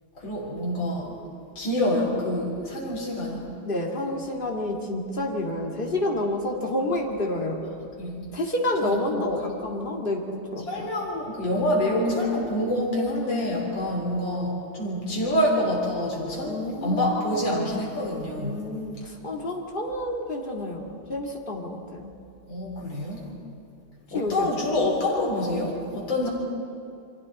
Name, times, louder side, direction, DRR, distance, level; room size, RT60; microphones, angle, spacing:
voice 1, 0.2-1.1 1.6-3.4 8.0-8.2 8.8-9.4 10.7-18.7 22.5-23.2 24.1-26.3, left 1 dB, 60° left, -3 dB, 4.4 m, -27 dB
voice 2, 3.6-7.6 8.3-10.9 16.4-17.8 18.4-22.1 24.1-24.6, left 1 dB, 25° left, -1 dB, 2.4 m, -29 dB
29.5 x 24.0 x 4.3 m, 2.6 s
omnidirectional pair, 2.3 m